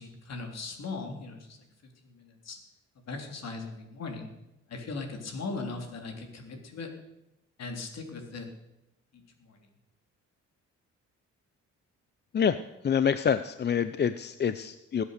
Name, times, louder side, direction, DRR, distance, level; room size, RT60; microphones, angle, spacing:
voice 1, 0.0-2.6 3.0-4.3 4.7-6.9 7.6-8.5 9.1-9.7, left 3 dB, 60° left, 4 dB, 3.5 m, -39 dB
voice 2, 12.8-15.0, left 7 dB, 35° left, 13 dB, 0.6 m, -26 dB
20.0 x 8.2 x 6.7 m, 0.89 s
cardioid pair, 90°, 30 cm